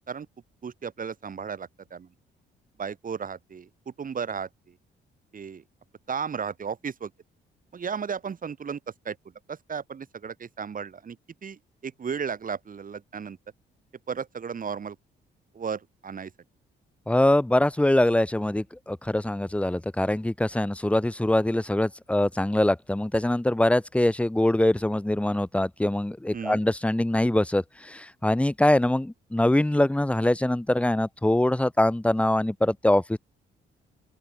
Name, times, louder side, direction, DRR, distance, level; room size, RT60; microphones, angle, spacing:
voice 1, 0.6-2.1 2.8-4.7 5.3-5.6 6.1-7.1 7.7-8.8 9.1-9.2 9.5-11.2 11.4-13.4 14.1-15.0 15.5-16.3 26.3-26.6, right 6 dB, 45° right, 3.7 m, -34 dB
voice 2, 17.1-33.2, left 1 dB, 5° left, 1.1 m, -23 dB
open air
cardioid pair, 90°, 20 cm